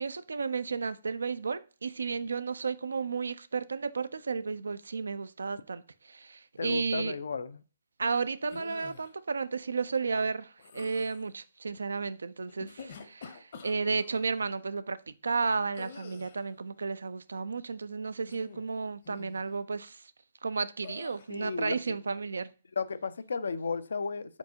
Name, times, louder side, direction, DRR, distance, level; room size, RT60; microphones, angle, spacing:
voice 1, 0.0-7.2 8.0-20.0 20.4-22.5, right 4 dB, 80° right, 0.3 m, -33 dB
voice 2, 6.6-7.6 21.3-22.0 22.8-24.4, left 5 dB, 75° left, 0.4 m, -34 dB
sound 1, 8.5-9.1 10.6-11.2 12.5-14.2 15.7-16.5 18.2-18.7 19.0-19.4 20.8-21.3, left 5 dB, 55° left, 0.8 m, -47 dB
4.4 x 4.2 x 2.7 m
hypercardioid pair, 135°, 0 cm